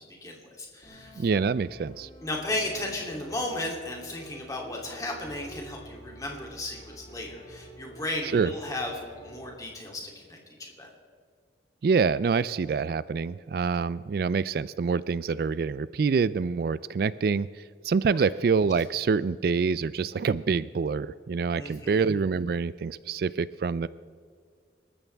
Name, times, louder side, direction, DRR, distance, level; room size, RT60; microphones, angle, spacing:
voice 1, 0.0-1.3 2.2-10.9 18.1-18.2 21.6-22.1, left 1 dB, 20° left, -1 dB, 2.9 m, -35 dB
sound 1, 0.8-9.6, right 1 dB, 40° left, 3.7 m, -49 dB
voice 2, 1.2-2.1 8.3-8.5 11.8-23.9, right 5 dB, 55° right, 17 dB, 0.3 m, -26 dB
26.5 x 14.0 x 3.4 m, 2.1 s
head